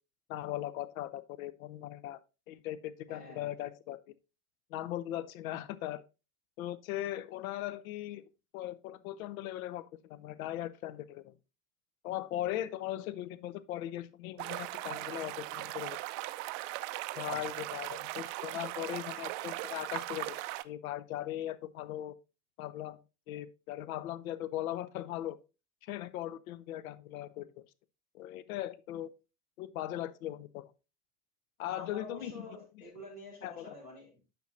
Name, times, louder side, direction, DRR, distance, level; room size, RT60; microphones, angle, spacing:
voice 1, 0.3-2.2 2.5-4.0 4.7-6.0 6.6-11.3 12.0-16.0 17.2-20.3 20.6-22.1 22.6-23.0 23.3-25.4 25.8-27.5 28.1-29.1 29.6-30.7 31.6-32.4 33.4-33.7, left 13 dB, 65° left, 0.6 m, -39 dB
voice 2, 3.1-3.6 17.3-17.7 31.6-34.2, left 1 dB, 80° left, 2.3 m, -48 dB
sound 1, 14.4-20.6, right 18 dB, 50° right, 0.5 m, -39 dB
9.3 x 5.9 x 2.6 m
figure-of-eight pair, 60°, 45 cm